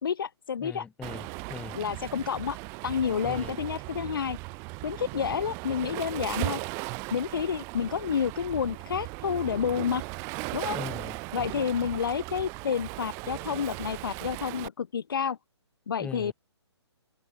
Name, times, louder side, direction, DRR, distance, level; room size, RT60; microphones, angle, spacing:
voice 1, 0.0-0.9 1.7-2.6 2.8-4.4 4.8-6.6 7.1-10.0 10.5-10.8 11.3-15.4 15.9-16.3, left 7 dB, 50° left, 1.8 m, -29 dB
voice 2, 0.6-1.8 3.2-3.5 10.7-11.2 16.0-16.3, left 6 dB, 10° left, 4.5 m, -40 dB
Waves surf, 1.0-14.7, right 30 dB, 20° right, 0.8 m, -37 dB
figure-of-eight pair, 130°, 15 cm